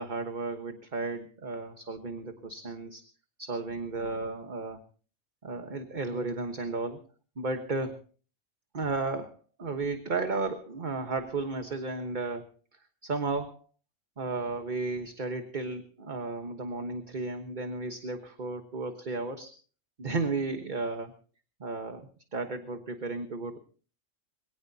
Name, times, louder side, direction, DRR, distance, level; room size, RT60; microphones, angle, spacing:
voice 1, 0.0-3.0 3.4-4.8 5.4-7.0 7.4-8.0 8.7-12.5 12.7-13.7 14.2-19.5 20.0-21.1 21.6-23.6, right 3 dB, 35° right, 6 dB, 1.4 m, -34 dB
22.5 x 17.5 x 2.8 m, 0.40 s
omnidirectional pair, 1.4 m